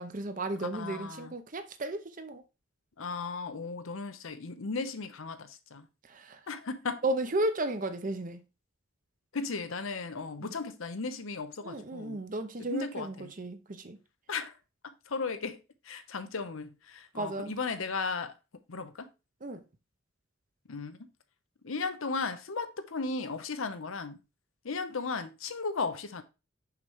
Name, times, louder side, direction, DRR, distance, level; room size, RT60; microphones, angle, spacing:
voice 1, 0.0-2.4 6.1-6.4 7.0-8.4 10.4-10.5 11.6-14.0 17.1-17.5 19.4-19.6, right 2 dB, 40° right, 0.7 m, -34 dB
voice 2, 0.6-1.3 3.0-5.9 6.5-7.0 9.3-12.2 12.6-13.3 14.3-14.5 14.8-18.4 18.7-19.1 20.7-21.0 21.6-24.2 24.6-26.2, left 4 dB, 85° left, 0.8 m, -36 dB
5.8 x 3.2 x 5.5 m
head